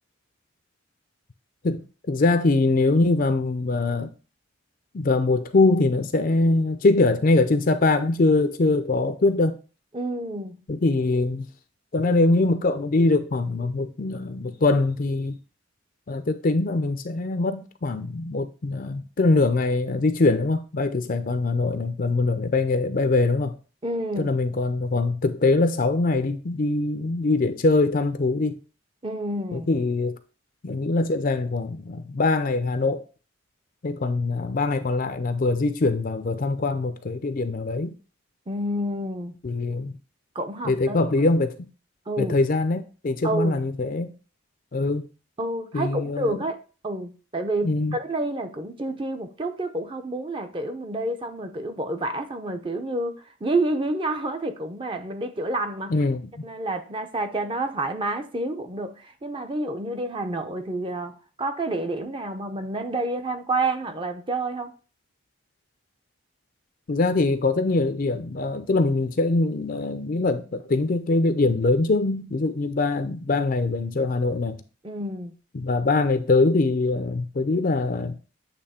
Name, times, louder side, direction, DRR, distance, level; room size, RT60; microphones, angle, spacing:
voice 1, 1.6-4.1 4.9-9.6 10.7-11.5 11.9-15.4 16.1-23.5 24.2-28.6 29.5-30.2 30.6-33.0 33.8-37.9 39.4-39.9 40.6-41.7 42.2-44.1 44.7-45.1 45.7-46.5 47.6-48.0 55.9-56.4 66.9-74.6 75.5-78.2, left 3 dB, 45° left, 0.5 m, -23 dB
voice 2, 9.9-10.6 23.8-24.3 29.0-29.7 38.5-39.3 40.3-41.3 42.1-42.4 43.2-43.6 45.4-56.0 56.4-64.7 74.8-75.3, right 2 dB, 25° right, 0.6 m, -29 dB
8.5 x 3.1 x 4.2 m
head